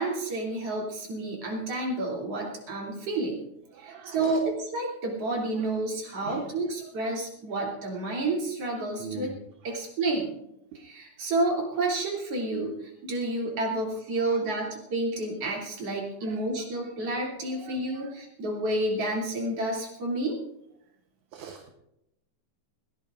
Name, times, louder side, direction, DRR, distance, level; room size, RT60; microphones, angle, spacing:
voice 1, 0.0-3.4 3.8-9.3 9.6-10.4 10.8-20.4, right 2 dB, 50° right, -2 dB, 3.8 m, -30 dB
voice 2, 3.8-4.4 6.3-6.5 7.0-7.1 9.0-9.3 17.6-17.7 21.3-21.7, right 6 dB, 70° right, 4 dB, 2.3 m, -40 dB
20.5 x 17.5 x 2.5 m, 0.83 s
omnidirectional pair, 3.8 m